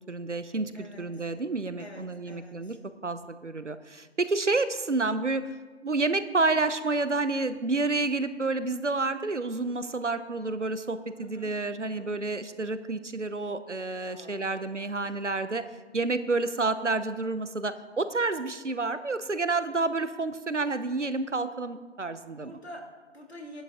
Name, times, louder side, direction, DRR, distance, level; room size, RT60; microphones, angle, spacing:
voice 1, 0.1-2.8 3.0-5.5 5.8-15.7 15.9-22.6, right 3 dB, 75° right, 12 dB, 0.9 m, -29 dB
voice 2, 0.7-1.0 1.8-2.8 11.2-11.5 11.8-12.1 14.1-14.7 15.0-15.2 22.4-23.6, equal, 60° left, 0 dB, 2.5 m, -47 dB
13.0 x 11.0 x 3.6 m, 1.3 s
figure-of-eight pair, 180°, 36 cm